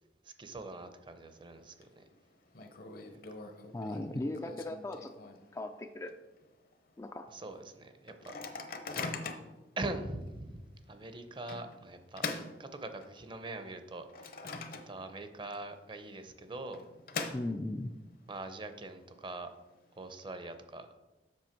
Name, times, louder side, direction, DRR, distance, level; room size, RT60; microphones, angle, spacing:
voice 1, 0.4-2.0 3.1-3.2 7.3-8.4 9.8-10.6 10.9-14.3 14.9-16.8 18.3-19.5 20.0-20.9, right 2 dB, 30° right, 8 dB, 0.7 m, -42 dB
Microwave oven, 1.3-1.8 2.1-2.2 2.5-5.6 6.1-6.2 6.4-6.7 7.2-7.3 8.1-9.6 10.2-10.4 11.5-13.3 13.8-15.3 15.5-15.6 16.5-17.9, left 4 dB, 55° left, 0.8 m, -42 dB
voice 2, 3.7-5.1 5.5-6.1 7.0-7.3 17.3-17.9, left 2 dB, 15° left, 6 dB, 0.3 m, -37 dB
7.6 x 6.3 x 4.5 m, 1.1 s
head